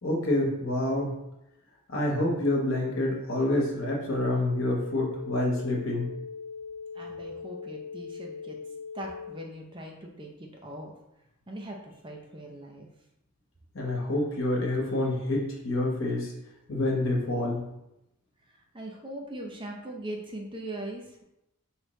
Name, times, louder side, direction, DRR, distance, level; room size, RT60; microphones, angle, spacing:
voice 1, 0.0-1.1 1.9-6.1 13.7-16.3 16.7-17.6, left 1 dB, 70° left, -2 dB, 1.2 m, -27 dB
sound 1, 4.4-9.4, left 5 dB, 60° right, 1.5 m, -40 dB
voice 2, 6.9-8.6 8.9-10.9 11.5-12.9 18.5-21.2, right 1 dB, 25° right, 0 dB, 0.6 m, -40 dB
4.9 x 3.2 x 3.2 m, 0.87 s
head